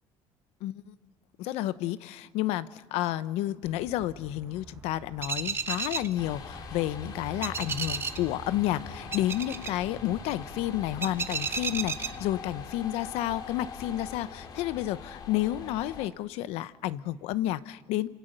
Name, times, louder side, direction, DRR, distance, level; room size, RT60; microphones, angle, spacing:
voice 1, 0.6-0.9 1.4-18.1, left 14 dB, 85° left, 15 dB, 0.9 m, -31 dB
sound 1, 3.6-12.7, right 5 dB, 25° right, 1.0 m, -36 dB
sound 2, 6.2-16.1, left 6 dB, 40° left, 2.4 m, -43 dB
27.0 x 26.5 x 6.7 m, 1.3 s
cardioid pair, 160°, 10 cm